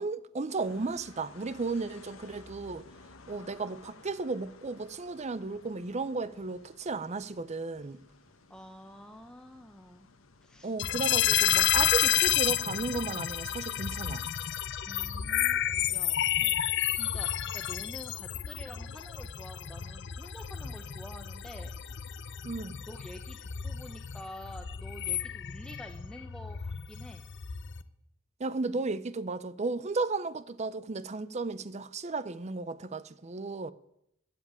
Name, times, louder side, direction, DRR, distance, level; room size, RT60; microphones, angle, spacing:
voice 1, 0.0-2.8 3.3-8.0 10.6-14.2 22.4-22.8 28.4-33.7, right 3 dB, 35° right, 0.6 m, -34 dB
sound 1, 0.6-11.5, left 3 dB, 85° left, 1.1 m, -55 dB
voice 2, 8.5-10.1 10.4-10.8 14.8-16.6 16.9-22.0 22.8-27.2, equal, 5° left, 0.8 m, -48 dB
sound 2, 10.8-27.8, left 11 dB, 60° left, 0.6 m, -31 dB
13.0 x 7.8 x 8.5 m
head